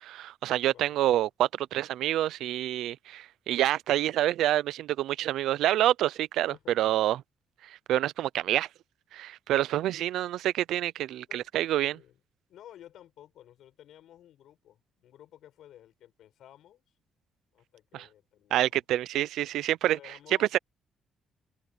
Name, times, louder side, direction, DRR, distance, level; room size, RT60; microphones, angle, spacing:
voice 1, 0.0-7.2 7.6-8.7 9.1-12.0 17.9-18.0 18.5-20.0 20.4-20.6, right 13 dB, 80° right, 0.5 m, -27 dB
voice 2, 0.7-1.0 6.5-7.1 11.3-11.5 11.8-12.2 12.5-16.8 17.5-18.8 19.8-20.6, left 12 dB, 70° left, 6.8 m, -54 dB
cardioid pair, 120°, 0 cm